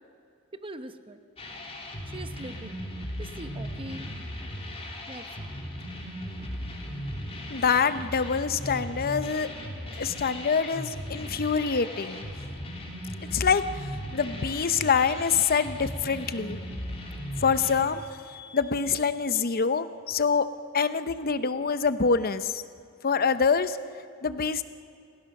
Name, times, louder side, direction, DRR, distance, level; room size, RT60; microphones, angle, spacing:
voice 1, 0.5-1.2 2.1-2.8 3.2-4.1 5.1-5.6, right 1 dB, 25° right, 10 dB, 0.9 m, -42 dB
sound 1, 1.4-17.7, equal, 30° left, 3.0 m, -37 dB
voice 2, 7.5-9.5 9.9-12.3 13.3-13.6 14.1-16.6 17.4-18.0 18.3-20.5 20.7-22.5 23.0-23.8 24.2-24.6, left 5 dB, 45° left, 12 dB, 0.8 m, -25 dB
29.0 x 16.5 x 6.6 m, 2.5 s
head